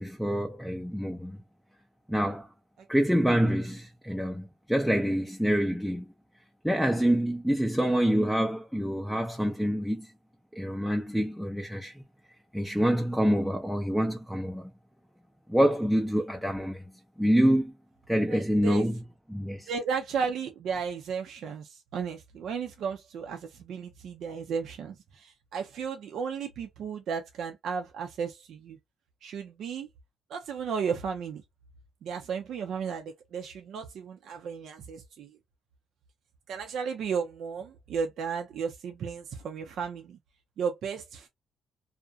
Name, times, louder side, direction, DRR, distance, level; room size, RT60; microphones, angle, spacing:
voice 1, 0.0-1.4 2.1-2.5 2.9-6.1 6.6-10.1 10.5-12.0 12.5-14.7 15.5-16.8 17.2-17.7 18.1-19.0 19.3-19.7, equal, ahead, 0.5 m, -26 dB
voice 2, 18.3-18.9 19.7-28.8 29.2-29.9 30.3-31.4 32.0-35.3 36.5-40.2 40.6-41.3, right 6 dB, 70° right, 0.5 m, -34 dB
2.4 x 2.1 x 2.5 m
cardioid pair, 90°, 0 cm